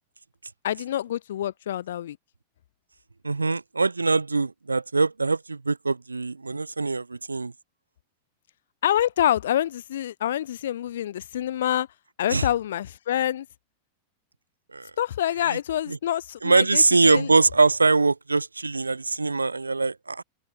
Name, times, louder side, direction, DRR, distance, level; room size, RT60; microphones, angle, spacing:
voice 1, 0.6-2.2 8.8-11.9 12.2-13.5 15.0-17.3, left 11 dB, 60° left, 0.3 m, -26 dB
voice 2, 3.2-7.5 12.3-12.4 14.7-14.9 15.5-15.6 15.9-16.0 16.4-20.2, right 3 dB, 80° right, 1.0 m, -23 dB
open air
figure-of-eight pair, 90°, 0 cm